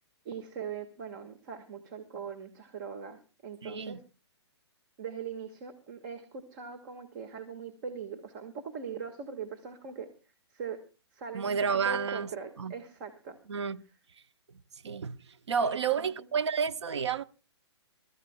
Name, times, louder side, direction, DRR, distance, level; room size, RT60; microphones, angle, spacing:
voice 1, 0.2-4.0 5.0-10.1 10.5-10.8 11.1-11.6 11.8-13.4 15.6-16.1, right 6 dB, 45° right, 1.6 m, -41 dB
voice 2, 3.6-4.0 11.3-12.3 12.6-12.7 13.5-13.8 14.8-17.2, right 6 dB, 75° right, 0.8 m, -30 dB
28.0 x 13.5 x 2.2 m
hypercardioid pair, 130°, 15 cm